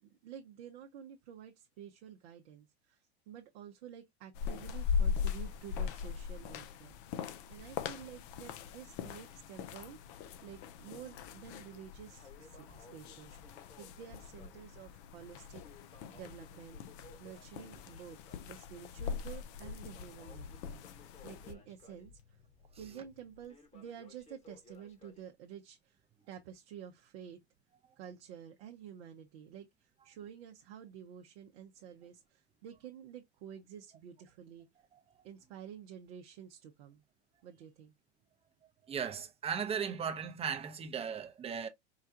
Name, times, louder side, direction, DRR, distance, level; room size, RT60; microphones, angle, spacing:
voice 1, 0.0-3.0 3.3-6.9 7.5-16.8 17.2-22.4 22.8-26.0 26.3-27.4 28.0-34.7 35.2-37.0 37.4-37.9, right 9 dB, 60° right, 0.7 m, -50 dB
sound 1, 4.3-21.5, left 6 dB, 50° left, 0.6 m, -40 dB
sound 2, 5.4-23.5, left 6 dB, 80° left, 2.2 m, -62 dB
Crackle, 6.5-8.4 8.7-8.8 9.3-9.4 10.0-10.7 11.0-25.3, left 2 dB, 20° left, 1.1 m, -60 dB
voice 2, 38.9-41.7, right 7 dB, 20° right, 0.6 m, -37 dB
4.8 x 2.3 x 2.6 m
hypercardioid pair, 100°, 34 cm